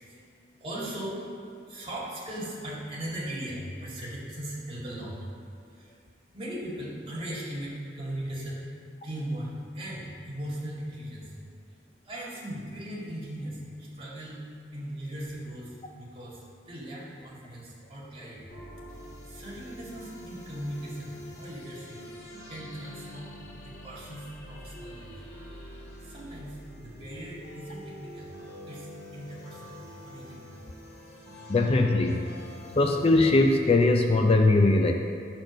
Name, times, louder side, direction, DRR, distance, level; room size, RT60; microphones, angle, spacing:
voice 1, 0.0-11.4 11.7-11.8 12.0-18.5 19.2-22.0 22.5-23.3 23.6-25.1 26.0-28.3 28.6-30.4, right 1 dB, 30° right, -6 dB, 2.3 m, -39 dB
sound 1, 18.5-33.6, equal, 60° left, 2.2 m, -45 dB
voice 2, 31.5-32.3 32.7-34.9, left 2 dB, 35° left, 3 dB, 0.5 m, -21 dB
10.0 x 4.4 x 6.3 m, 2.5 s
head